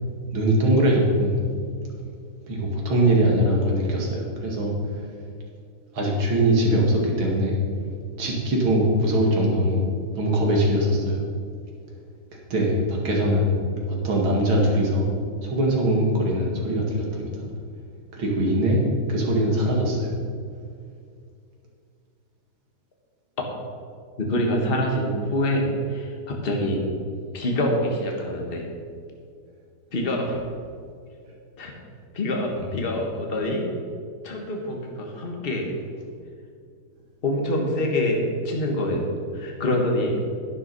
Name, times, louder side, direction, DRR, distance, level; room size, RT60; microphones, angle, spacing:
voice 1, 0.3-1.4 2.5-5.1 5.9-7.6 8.2-9.8 10.2-11.2 12.5-13.5 13.9-15.1 15.4-17.5 18.1-18.8 19.1-20.1 30.1-30.2 32.6-32.7, right 1 dB, 80° right, -2 dB, 3.0 m, -22 dB
voice 2, 24.2-26.8 27.3-28.7 29.9-30.4 31.6-31.7 32.1-33.6 34.2-35.6 37.2-38.2 38.4-39.1 39.3-40.1, left 1 dB, 30° left, 1 dB, 1.6 m, -25 dB
11.0 x 9.8 x 5.4 m, 2.3 s
omnidirectional pair, 2.2 m